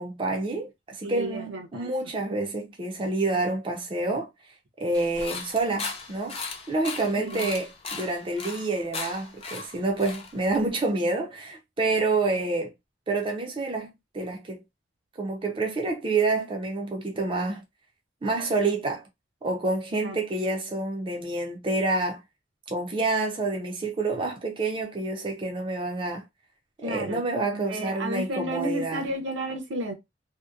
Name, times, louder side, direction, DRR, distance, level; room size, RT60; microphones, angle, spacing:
voice 1, 0.0-4.3 4.8-6.4 6.7-12.7 13.1-13.9 14.1-14.6 15.2-17.6 18.2-19.0 19.4-22.2 22.7-26.2 26.8-29.1, right 3 dB, 30° right, 0.5 m, -28 dB
voice 2, 1.0-1.9 7.2-7.5 19.9-20.2 26.8-27.2 27.5-29.9, right 1 dB, 75° right, 0.8 m, -32 dB
sound 1, 4.9-10.7, left 4 dB, 30° left, 0.5 m, -37 dB
2.8 x 2.0 x 2.3 m
head